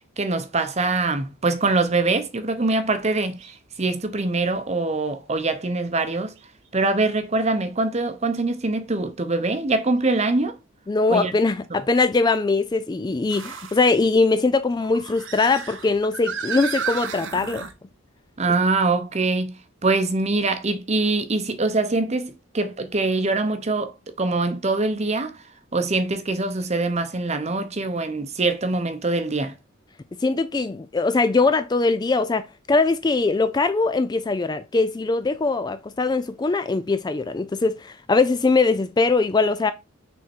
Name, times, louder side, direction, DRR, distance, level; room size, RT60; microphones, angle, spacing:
voice 1, 0.2-3.4 3.8-6.3 6.7-10.6 11.1-11.3 11.7-11.8 18.4-25.4 25.7-29.5, right 3 dB, 30° right, 0.8 m, -23 dB
sound 1, 3.4-3.6 4.2-4.3 6.4-6.5 10.0-10.1 13.3-13.8 14.8-17.7, right 6 dB, 60° right, 0.8 m, -33 dB
voice 2, 10.9-17.6 30.2-39.7, left 3 dB, 20° left, 0.3 m, -21 dB
6.1 x 3.7 x 4.4 m
head